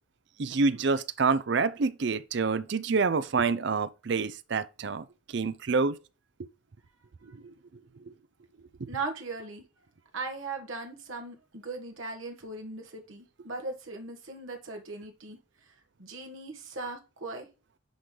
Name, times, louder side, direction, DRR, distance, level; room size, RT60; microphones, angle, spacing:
voice 1, 0.4-5.0 5.3-5.9 7.4-7.5, right 4 dB, 55° right, 0.5 m, -27 dB
voice 2, 8.9-9.6 10.1-15.4 16.0-17.5, right 3 dB, 75° right, 1.5 m, -38 dB
10.0 x 3.8 x 3.2 m
head